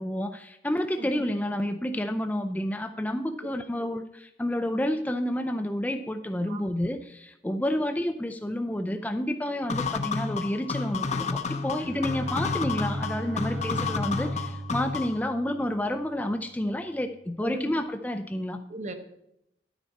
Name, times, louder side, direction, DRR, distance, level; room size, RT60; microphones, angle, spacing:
voice 1, 0.0-18.6, left 1 dB, 10° left, 6 dB, 0.4 m, -30 dB
sound 1, 9.7-15.3, left 4 dB, 40° left, 0.7 m, -31 dB
Bowed string instrument, 11.7-16.2, right 2 dB, 60° right, 2.1 m, -38 dB
voice 2, 17.4-17.8 18.7-18.9, right 2 dB, 40° right, 7 dB, 1.0 m, -38 dB
11.0 x 9.1 x 4.2 m, 0.81 s
head